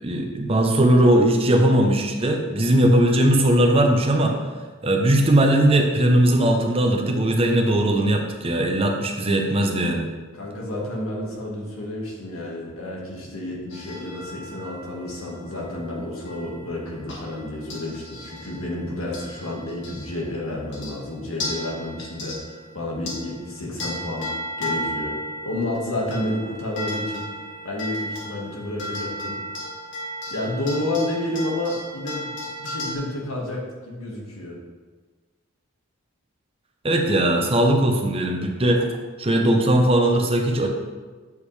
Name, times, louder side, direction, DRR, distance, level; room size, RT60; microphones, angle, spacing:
voice 1, 0.0-4.4 4.8-10.1 36.8-38.9 39.2-40.7, right 1 dB, 25° right, 2 dB, 0.7 m, -19 dB
voice 2, 10.3-25.2 25.4-27.3 27.6-29.4 30.3-34.6, left 1 dB, 80° left, -2 dB, 1.7 m, -30 dB
sound 1, 13.7-20.3 20.7-21.0 21.4-33.0, left 1 dB, 55° left, 1.5 m, -35 dB
8.1 x 5.3 x 3.3 m, 1.4 s
head